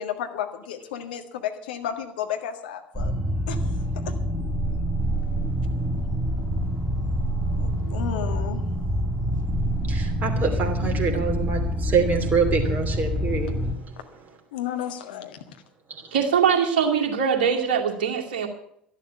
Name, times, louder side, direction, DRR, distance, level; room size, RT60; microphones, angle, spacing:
voice 1, 0.0-3.1 3.5-3.6 4.1-4.2 7.5-8.6 14.5-15.4, left 9 dB, 70° left, 6 dB, 1.6 m, -32 dB
sound 1, 2.9-13.7, equal, 5° right, 2.7 m, -26 dB
voice 2, 9.9-13.5, right 5 dB, 35° right, 2 dB, 2.8 m, -25 dB
voice 3, 16.1-18.5, right 7 dB, 70° right, 3 dB, 2.3 m, -22 dB
12.0 x 11.5 x 8.4 m, 0.69 s
figure-of-eight pair, 65°, 5 cm